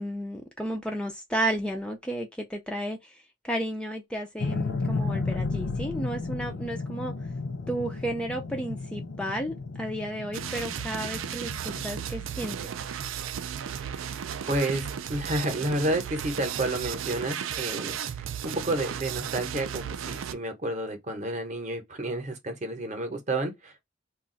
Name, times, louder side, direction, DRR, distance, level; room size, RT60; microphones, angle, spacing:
voice 1, 0.0-3.1 3.4-7.1 7.7-12.6, right 1 dB, 5° left, 0.3 m, -33 dB
sound 1, 4.4-12.6, left 3 dB, 65° left, 0.5 m, -33 dB
sound 2, 10.3-20.3, right 8 dB, 80° right, 0.4 m, -35 dB
voice 2, 14.5-23.8, right 1 dB, 35° right, 0.7 m, -30 dB
2.4 x 2.3 x 3.7 m
head